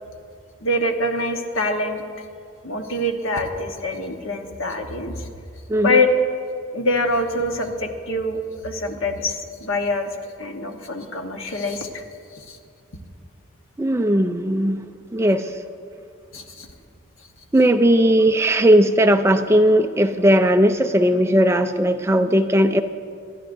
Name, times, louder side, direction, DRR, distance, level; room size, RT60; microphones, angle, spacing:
voice 1, 0.6-2.0 2.6-5.3 5.8-6.1 6.7-10.1 10.4-12.0 12.3-12.6 16.3-16.7, left 1 dB, 80° left, 4 dB, 1.2 m, -25 dB
voice 2, 5.7-6.0 13.8-14.8 15.1-15.5 17.5-22.8, right 1 dB, 15° right, 7 dB, 0.4 m, -17 dB
24.5 x 11.0 x 2.6 m, 2.4 s
head